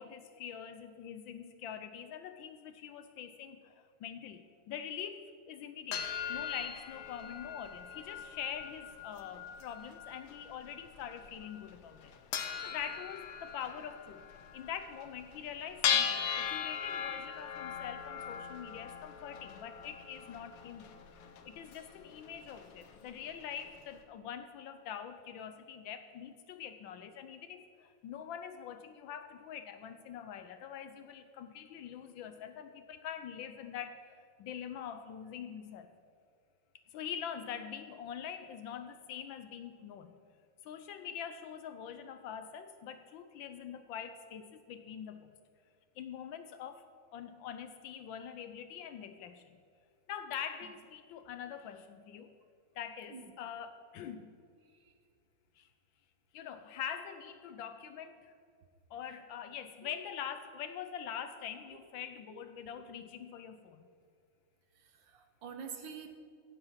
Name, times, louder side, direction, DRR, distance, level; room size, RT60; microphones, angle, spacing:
voice 1, 0.0-14.2 14.5-20.9 21.2-35.9 36.9-40.1 40.6-45.3 46.0-49.4 50.1-52.3 52.7-54.3 55.6-55.7 56.3-58.3 58.9-63.9, left 8 dB, 70° left, 10 dB, 1.3 m, -44 dB
sound 1, 5.9-23.8, left 7 dB, 90° left, 1.9 m, -39 dB
voice 2, 64.7-66.1, right 6 dB, 65° right, 6 dB, 1.6 m, -47 dB
17.0 x 7.9 x 5.7 m, 2.2 s
omnidirectional pair, 2.4 m